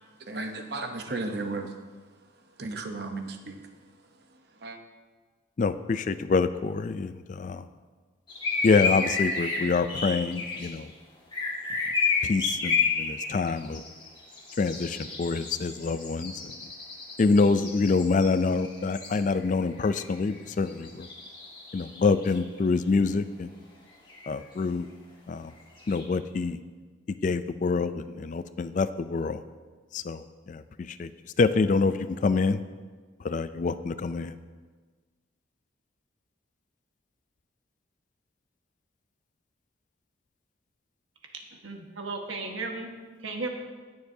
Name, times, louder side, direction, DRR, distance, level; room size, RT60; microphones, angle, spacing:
voice 1, 0.2-1.8 2.6-3.7 4.6-4.8, right 3 dB, 55° right, 6 dB, 0.8 m, -34 dB
voice 2, 5.6-7.7 8.6-10.9 12.2-13.8 14.6-16.5 17.2-21.1 21.7-23.5 24.3-24.9 25.3-25.5 25.9-26.6 27.2-29.4 29.9-30.2 30.5-31.1 31.4-32.6 33.2-34.3, left 4 dB, 40° left, 12 dB, 0.3 m, -26 dB
sound 1, 8.3-10.7 11.3-19.5 19.8-20.4 20.7-22.4 24.1-24.3 25.6-26.0, left 5 dB, 25° left, 1.7 m, -31 dB
voice 3, 41.5-42.9 43.2-43.5, right 3 dB, 85° right, 2 dB, 1.4 m, -35 dB
18.5 x 6.8 x 2.7 m, 1.4 s
head